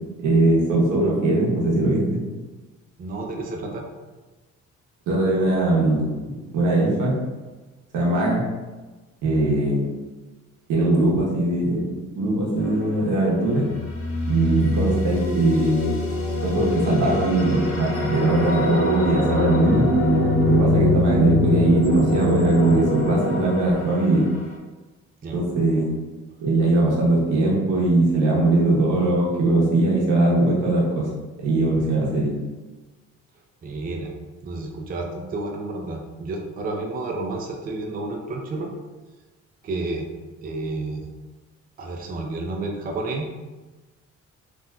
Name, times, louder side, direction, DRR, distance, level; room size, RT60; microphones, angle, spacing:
voice 1, 0.2-2.2 5.1-7.1 7.9-8.4 9.2-9.9 10.7-13.7 14.3-15.9 16.4-19.8 20.5-24.2 25.3-25.9 26.4-31.1 31.4-32.3, right 2 dB, 85° right, -4 dB, 0.9 m, -20 dB
voice 2, 3.0-3.8 25.2-25.4 33.6-34.1 34.4-38.7 39.6-40.1 40.4-41.1 41.8-43.3, right 2 dB, 30° right, 1 dB, 0.4 m, -30 dB
sound 1, 12.6-13.2 13.6-24.3, left 1 dB, 50° left, 0.6 m, -23 dB
3.5 x 2.5 x 2.2 m, 1.2 s
cardioid pair, 90°, 30 cm